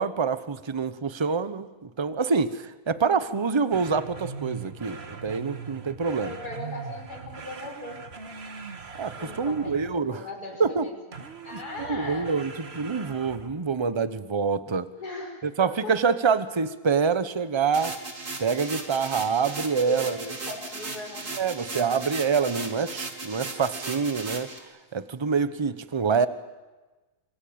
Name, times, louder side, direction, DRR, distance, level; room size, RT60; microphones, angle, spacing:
voice 1, 0.0-6.4 9.0-10.2 10.6-10.9 11.5-14.9 15.6-18.0 18.4-20.3 21.4-24.5 24.9-26.3, right 5 dB, 20° right, 13 dB, 0.8 m, -26 dB
sound 1, 3.7-10.1 11.1-13.7, right 5 dB, 45° right, 1.7 m, -41 dB
voice 2, 6.1-8.0 9.2-10.9 11.4-12.3 15.0-15.9 19.8-21.2, left 2 dB, 85° left, 1 dB, 6.7 m, -38 dB
sound 2, 17.7-24.6, right 3 dB, 80° right, 3.3 m, -37 dB
26.5 x 26.0 x 8.8 m, 1.2 s
omnidirectional pair, 1.6 m